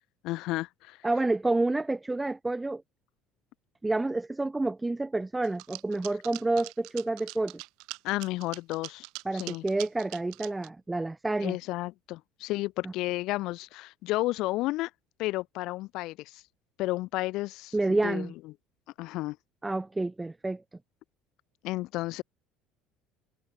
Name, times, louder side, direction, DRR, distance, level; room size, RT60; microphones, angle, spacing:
voice 1, 0.2-1.0 8.0-9.1 9.3-9.6 11.4-14.9 15.2-16.4 16.8-18.3 19.0-19.4 21.6-22.2, left 19 dB, 65° left, 3.4 m, -32 dB
voice 2, 1.0-2.8 3.8-7.6 9.2-11.6 12.8-12.9 17.7-18.3 19.6-20.6, right 2 dB, 10° right, 1.3 m, -29 dB
sound 1, 5.4-10.7, right 25 dB, 75° right, 3.7 m, -42 dB
cardioid pair, 120°, 0 cm